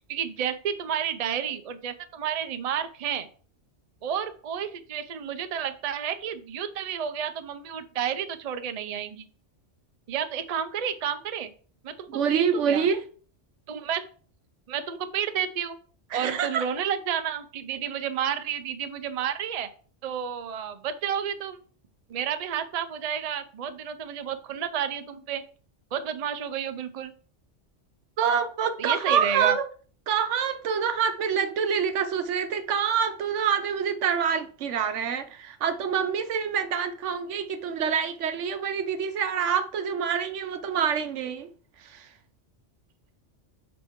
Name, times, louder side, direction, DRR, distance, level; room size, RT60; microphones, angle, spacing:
voice 1, 0.1-3.3 4.0-9.3 10.1-11.5 11.8-12.9 13.7-14.1 14.7-15.8 16.1-19.7 20.0-21.6 22.1-25.4 25.9-27.1 28.8-29.6, right 8 dB, 45° right, 0.5 m, -31 dB
voice 2, 12.1-13.0 16.1-16.6 28.2-29.6 30.1-41.5 41.8-42.1, right 7 dB, 80° right, 1.1 m, -26 dB
7.2 x 5.2 x 3.6 m
omnidirectional pair, 1.2 m